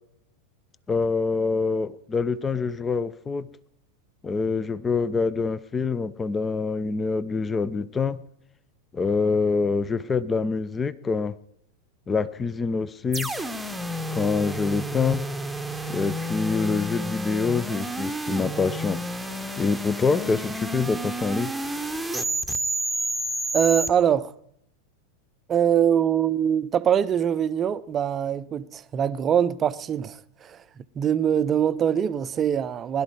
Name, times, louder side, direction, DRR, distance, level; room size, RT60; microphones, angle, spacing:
voice 1, 0.9-3.5 4.2-8.2 8.9-11.3 12.1-13.3 14.1-15.2 15.9-19.0 19.6-21.5, left 4 dB, 15° left, 0.6 m, -25 dB
sound 1, 13.1-23.9, right 1 dB, 5° right, 1.1 m, -30 dB
voice 2, 23.5-24.3 25.5-33.0, right 9 dB, 25° right, 0.6 m, -23 dB
20.5 x 12.0 x 4.8 m
figure-of-eight pair, 90°, 0 cm